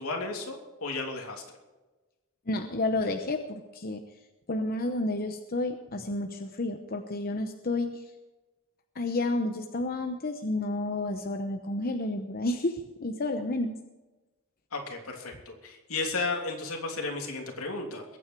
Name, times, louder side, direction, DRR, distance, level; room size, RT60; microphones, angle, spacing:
voice 1, 0.0-1.4 14.7-18.0, left 3 dB, 80° left, 1 dB, 3.1 m, -34 dB
voice 2, 2.5-4.0 4.5-8.0 8.9-13.8, left 2 dB, 45° left, 6 dB, 0.9 m, -31 dB
22.0 x 9.1 x 4.7 m, 1.1 s
head